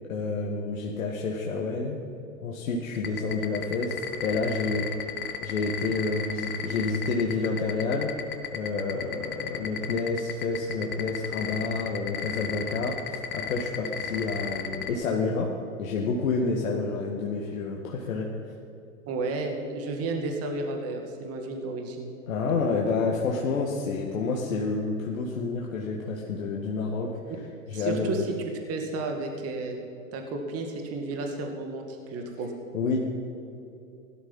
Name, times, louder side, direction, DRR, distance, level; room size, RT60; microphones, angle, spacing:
voice 1, 0.1-2.0 2.4-5.1 5.4-8.1 8.5-15.5 15.8-18.3 22.3-27.1 27.7-28.2 32.7-33.0, left 4 dB, 70° left, -1 dB, 2.0 m, -29 dB
sound 1, 2.9-14.9, left 9 dB, 25° left, 1.3 m, -33 dB
voice 2, 19.1-22.1 27.7-28.4 28.7-29.8 30.1-32.5, right 3 dB, 35° right, 3 dB, 2.2 m, -32 dB
17.0 x 12.5 x 5.6 m, 2.8 s
hypercardioid pair, 100°, 42 cm